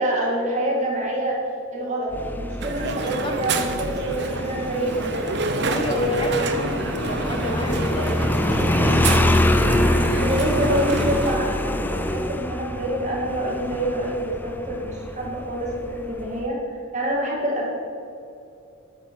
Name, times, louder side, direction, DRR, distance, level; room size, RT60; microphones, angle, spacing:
voice 1, 0.0-1.4 1.7-5.3 5.8-6.4 9.4-9.7 10.2-17.7, right 1 dB, 35° right, -3 dB, 2.4 m, -26 dB
Motorcycle, 2.1-16.4, left 1 dB, 10° left, 0.4 m, -25 dB
Crowd, 2.6-11.4, right 3 dB, 55° right, 0.8 m, -28 dB
voice 2, 2.9-3.4 5.7-9.1, left 1 dB, 25° left, 4 dB, 1.0 m, -31 dB
10.0 x 6.5 x 6.1 m, 2.7 s
head